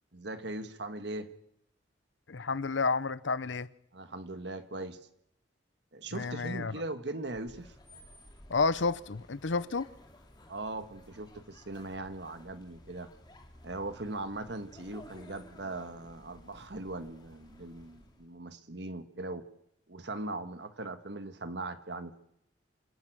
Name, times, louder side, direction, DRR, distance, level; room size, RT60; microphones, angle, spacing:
voice 1, 0.1-1.3 3.9-5.1 5.9-7.7 10.5-13.1 13.6-19.5 19.9-22.2, right 2 dB, 65° right, 1.5 m, -40 dB
voice 2, 2.3-3.7 6.1-6.8 8.5-9.9, left 4 dB, 80° left, 0.8 m, -30 dB
sound 1, 7.2-18.4, left 1 dB, 25° left, 2.3 m, -55 dB
26.5 x 11.0 x 9.2 m
head